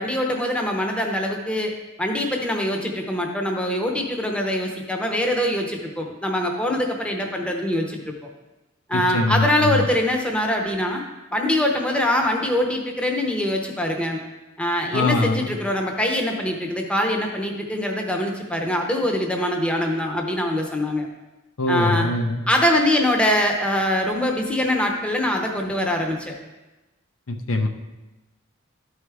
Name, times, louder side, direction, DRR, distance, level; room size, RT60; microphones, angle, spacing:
voice 1, 0.0-1.7 2.0-8.0 8.9-11.0 11.3-14.2 14.6-21.1 21.7-22.1 22.5-26.3, left 1 dB, 5° left, 1 dB, 0.8 m, -23 dB
voice 2, 8.9-9.5 9.7-9.8 14.9-15.5 21.6-22.4 27.3-27.7, left 2 dB, 75° left, 4 dB, 0.7 m, -22 dB
12.5 x 4.7 x 3.4 m, 1.1 s
head